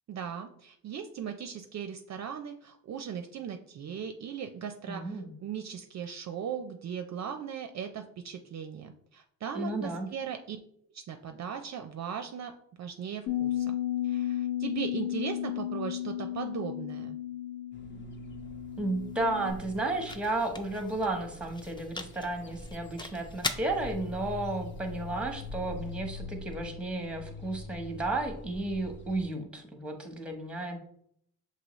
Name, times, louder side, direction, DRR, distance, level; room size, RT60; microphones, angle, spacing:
voice 1, 0.1-10.6 10.9-12.5 12.8-13.7 14.0-17.2, right 8 dB, 50° right, 6 dB, 0.4 m, -38 dB
voice 2, 4.9-5.3 9.5-10.1 18.8-30.8, right 2 dB, 5° right, 4 dB, 0.9 m, -33 dB
Bass guitar, 13.3-19.5, left 12 dB, 75° left, 1.4 m, -34 dB
sound 1, 17.7-29.2, left 3 dB, 30° left, 0.7 m, -44 dB
sound 2, 18.5-26.5, left 3 dB, 15° left, 0.3 m, -43 dB
6.1 x 2.8 x 3.0 m, 0.67 s
cardioid pair, 100°, 35 cm